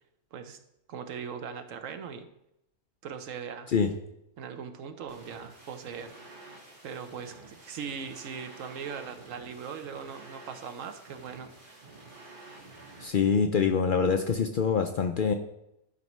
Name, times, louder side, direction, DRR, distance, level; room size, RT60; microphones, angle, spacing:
voice 1, 0.9-2.3 3.0-3.7 4.4-6.1 6.8-11.8, right 6 dB, 85° right, 8 dB, 1.1 m, -40 dB
sound 1, 5.1-13.1, right 2 dB, 40° right, 1.8 m, -50 dB
voice 2, 13.0-15.3, left 6 dB, 60° left, 5 dB, 0.5 m, -25 dB
11.0 x 5.3 x 3.1 m, 0.82 s
omnidirectional pair, 1.3 m